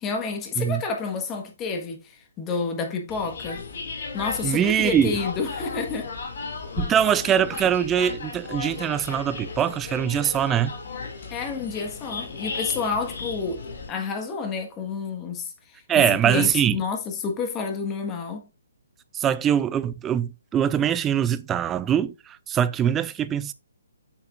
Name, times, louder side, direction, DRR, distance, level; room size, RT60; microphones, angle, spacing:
voice 1, 0.0-3.7 4.1-6.1 11.3-13.6 13.9-18.5, left 5 dB, 20° left, 1.6 m, -29 dB
sound 1, 3.1-13.9, left 4 dB, 50° left, 2.4 m, -35 dB
voice 2, 4.4-5.2 6.8-10.7 15.9-16.8 19.1-23.5, right 9 dB, 15° right, 0.5 m, -23 dB
8.7 x 6.4 x 2.5 m
figure-of-eight pair, 135°, 0 cm